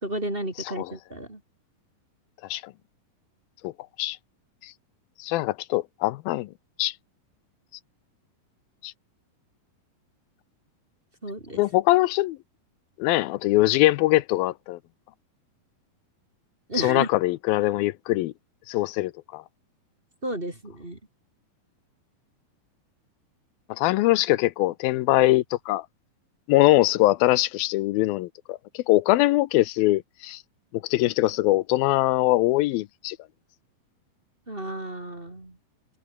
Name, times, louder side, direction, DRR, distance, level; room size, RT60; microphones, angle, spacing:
voice 1, 0.0-1.4 11.2-11.6 16.7-17.1 20.2-21.0 34.5-35.6, right 1 dB, 15° right, 3.2 m, -33 dB
voice 2, 5.2-6.5 6.8-6.9 8.8-8.9 11.5-12.4 13.0-14.8 16.8-18.3 18.7-19.4 23.7-25.9 26.5-30.4 30.8-33.2, left 18 dB, 85° left, 2.6 m, -22 dB
open air
omnidirectional pair, 4.2 m